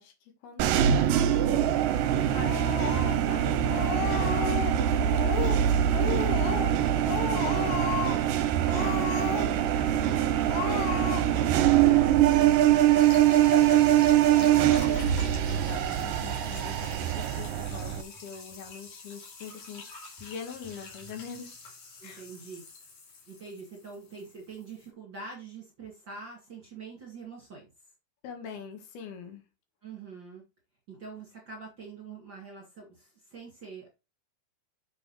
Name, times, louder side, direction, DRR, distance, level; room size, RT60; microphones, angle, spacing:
voice 1, 0.0-1.7 2.3-7.7 8.6-21.5 22.0-22.2 28.2-29.4, left 6 dB, 70° left, 3.5 m, -44 dB
sound 1, 0.6-18.0, right 11 dB, 75° right, 2.2 m, -23 dB
Speech, 2.4-3.4 3.7-4.8 5.2-5.7 5.9-6.8 7.1-8.3 8.6-9.7 10.1-10.2 10.5-11.5, left 8 dB, 90° left, 3.0 m, -33 dB
sound 2, 13.0-24.9, left 3 dB, 50° left, 3.9 m, -45 dB
voice 2, 22.0-22.6 23.3-27.7 29.8-30.4 30.9-33.9, right 4 dB, 35° right, 2.1 m, -44 dB
8.4 x 6.8 x 3.2 m
omnidirectional pair, 4.7 m